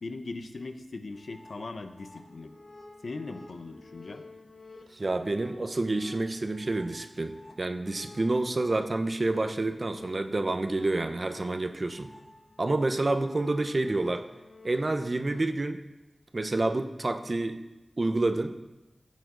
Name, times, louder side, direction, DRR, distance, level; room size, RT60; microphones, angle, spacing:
voice 1, 0.0-2.5 3.0-4.2, left 3 dB, 75° left, 7 dB, 0.8 m, -39 dB
sound 1, 1.1-15.5, left 2 dB, 50° left, 1.4 m, -51 dB
voice 2, 4.9-12.1 12.6-14.3 14.6-15.8 16.3-17.6 18.0-18.6, right 2 dB, 45° right, 7 dB, 0.8 m, -28 dB
15.5 x 8.5 x 3.9 m, 1.0 s
wide cardioid pair, 90°, 0 cm